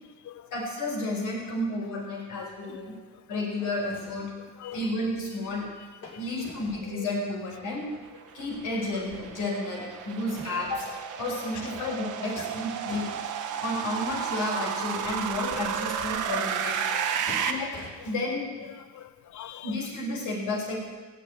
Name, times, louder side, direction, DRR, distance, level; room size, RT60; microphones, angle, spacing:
voice 1, 0.5-2.9 3.3-4.3 4.7-5.7 6.2-7.8 8.3-10.9 11.2-13.0 13.6-16.8 17.4-17.8 18.0-18.5 19.6-20.8, left 2 dB, 85° left, -3 dB, 5.7 m, -31 dB
voice 2, 2.4-2.8 4.6-4.8 6.9-7.0 16.1-16.2 16.9-17.4 18.9-19.7, left 12 dB, 70° left, 14 dB, 0.8 m, -43 dB
sound 1, 3.8-5.2 6.0-6.9 7.7-7.8 8.5-9.8 10.1-14.4 14.8-16.4 16.9-18.3, left 2 dB, 50° left, 5.5 m, -47 dB
sound 2, 7.9-17.5, right 8 dB, 75° right, 1.3 m, -32 dB
16.5 x 6.6 x 9.5 m, 1.3 s
cardioid pair, 90°, 30 cm